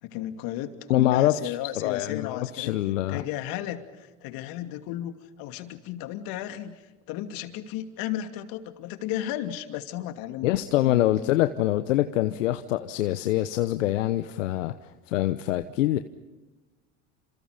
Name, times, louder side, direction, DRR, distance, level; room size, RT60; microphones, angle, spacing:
voice 1, 0.0-2.8 3.1-6.8 7.1-11.3, left 12 dB, 65° left, 8 dB, 2.7 m, -34 dB
voice 2, 0.9-3.2 10.4-16.0, left 14 dB, 85° left, 10 dB, 1.1 m, -25 dB
29.5 x 27.0 x 5.2 m, 1.2 s
hypercardioid pair, 85°, 37 cm